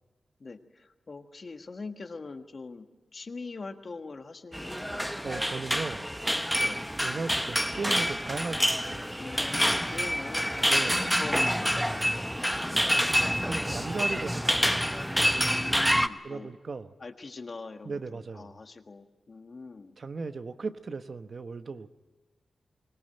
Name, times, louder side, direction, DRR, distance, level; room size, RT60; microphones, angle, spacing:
voice 1, 0.4-2.9 3.1-5.0 6.5-6.9 9.2-12.9 15.3-16.5 17.0-20.0, left 3 dB, 50° left, 6 dB, 1.5 m, -43 dB
sound 1, 4.5-16.1, equal, ahead, 0.8 m, -27 dB
voice 2, 5.2-6.1 7.0-9.1 10.6-11.0 13.5-14.7 16.2-16.9 17.8-18.5 20.0-21.9, right 4 dB, 55° right, 10 dB, 0.9 m, -37 dB
24.0 x 18.0 x 9.0 m, 1.2 s
cardioid pair, 75°, 0 cm